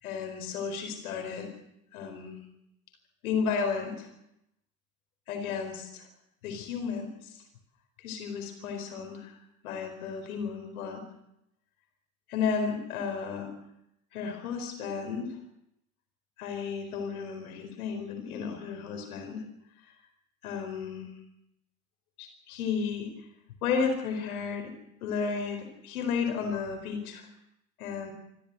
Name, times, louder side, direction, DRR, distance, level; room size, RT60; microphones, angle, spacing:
voice 1, 0.0-1.5 1.9-2.4 3.2-4.1 5.3-6.1 6.4-7.3 8.0-9.3 9.6-11.0 12.3-13.5 14.1-15.3 16.4-19.5 19.8-19.9 20.4-21.1 22.2-23.1 23.6-24.7 25.0-27.3 27.8-28.1, left 6 dB, 70° left, 5 dB, 4.6 m, -33 dB
26.5 x 13.0 x 8.0 m, 0.81 s
figure-of-eight pair, 60°, 44 cm